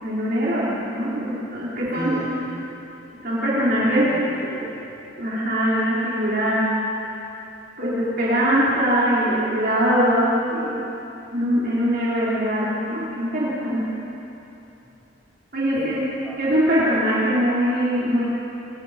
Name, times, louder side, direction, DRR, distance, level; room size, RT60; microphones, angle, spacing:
voice 1, 0.0-2.1 3.2-4.0 5.2-6.7 7.8-10.8 11.3-13.8 15.5-16.0 16.4-18.3, equal, 50° right, -9 dB, 4.9 m, -22 dB
voice 2, 1.9-2.7 3.6-4.8 15.8-16.4, equal, 5° left, -9 dB, 3.1 m, -35 dB
30.0 x 27.0 x 5.5 m, 2.9 s
head